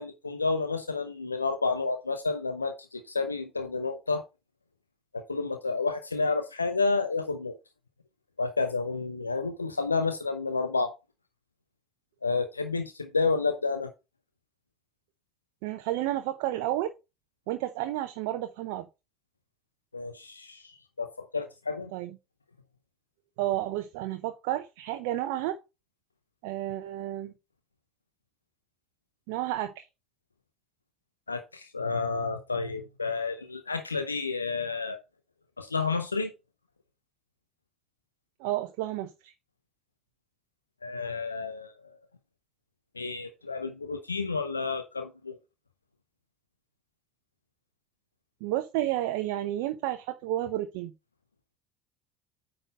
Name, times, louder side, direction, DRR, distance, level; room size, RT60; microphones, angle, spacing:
voice 1, 0.0-4.2 5.1-7.6 8.4-10.9 12.2-13.9 19.9-21.9 31.3-35.0 35.6-36.3 40.8-42.0 42.9-45.4, left 4 dB, 85° left, 0.7 m, -30 dB
voice 2, 15.6-16.9 17.5-18.8 21.9-22.1 23.4-25.6 26.4-27.3 29.3-29.8 38.4-39.3 48.4-50.9, right 14 dB, 60° right, 0.7 m, -31 dB
9.0 x 3.9 x 5.1 m
figure-of-eight pair, 65°, 0 cm